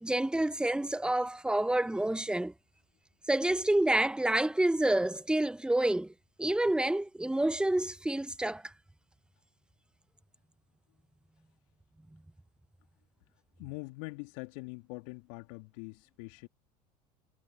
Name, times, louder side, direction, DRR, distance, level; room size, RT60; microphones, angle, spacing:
voice 1, 0.0-2.5 3.3-6.1 6.4-8.7, right 1 dB, 5° right, 0.9 m, -28 dB
voice 2, 13.6-16.5, left 29 dB, 60° left, 2.5 m, -43 dB
figure-of-eight pair, 75°, 21 cm